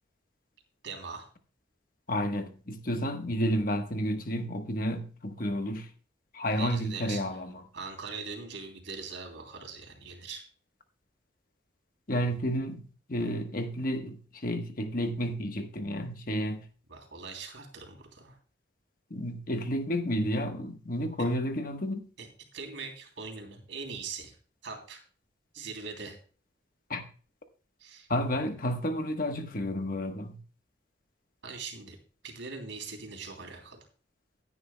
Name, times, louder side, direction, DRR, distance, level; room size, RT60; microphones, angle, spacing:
voice 1, 0.8-1.3 6.5-7.4 7.7-10.4 16.9-18.4 22.2-22.3 22.5-24.4 24.6-25.0 25.5-26.2 27.8-28.1 31.4-32.0 32.2-33.9, right 4 dB, 80° right, 3.1 m, -41 dB
voice 2, 2.1-5.9 6.3-7.5 12.1-16.6 19.1-22.0 26.9-27.0 28.1-30.4, equal, 50° left, 1.2 m, -31 dB
16.0 x 9.6 x 2.2 m
head